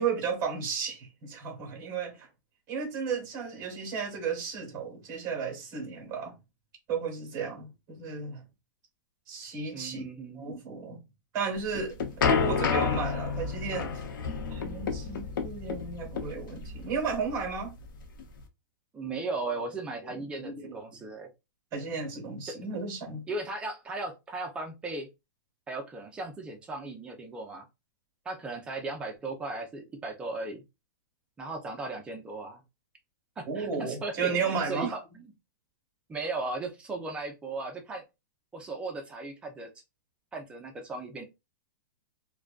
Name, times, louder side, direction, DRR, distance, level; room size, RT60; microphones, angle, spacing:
voice 1, 0.0-2.3 2.7-6.3 6.9-8.4 9.3-10.0 10.4-11.0 11.3-13.9 14.5-17.8 20.1-20.8 21.7-23.3 33.5-34.9, right 5 dB, 30° right, 1.1 m, -34 dB
voice 2, 9.7-10.4 18.9-21.3 22.5-22.6 23.3-25.1 25.7-27.7 28.3-30.6 31.4-32.6 33.4-35.3 36.1-38.0 38.5-39.7 40.3-41.3, right 3 dB, 10° right, 0.4 m, -37 dB
sound 1, 11.6-18.4, left 5 dB, 80° left, 0.6 m, -30 dB
2.4 x 2.2 x 2.3 m
hypercardioid pair, 155°, 11 cm